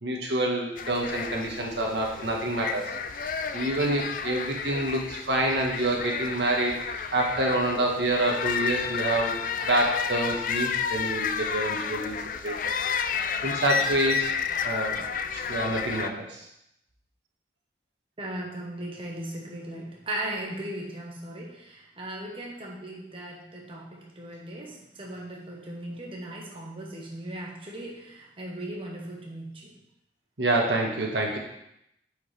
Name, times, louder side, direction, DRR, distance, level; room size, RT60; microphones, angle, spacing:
voice 1, 0.0-9.4 9.6-12.2 12.4-14.3 14.6-15.1 15.3-16.4 30.4-31.4, right 1 dB, 85° right, -1 dB, 1.5 m, -27 dB
sound 1, 0.8-16.1, left 6 dB, 50° left, 0.4 m, -31 dB
voice 2, 18.2-29.8, right 1 dB, 30° right, -2 dB, 1.2 m, -38 dB
8.9 x 5.1 x 3.4 m, 0.80 s
head